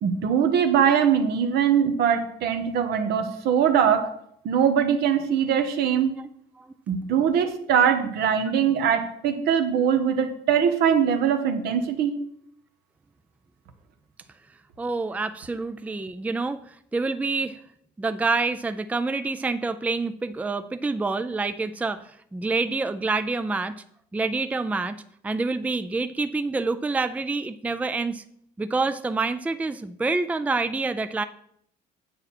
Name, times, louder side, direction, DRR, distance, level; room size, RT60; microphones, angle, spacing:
voice 1, 0.0-4.1 4.4-6.2 6.9-12.1, right 8 dB, 75° right, 7 dB, 1.3 m, -22 dB
voice 2, 14.8-17.6 18.0-23.8 24.1-28.2 28.6-31.2, right 3 dB, 10° right, 11 dB, 0.4 m, -27 dB
9.1 x 7.4 x 4.3 m, 0.70 s
cardioid pair, 110°, 17 cm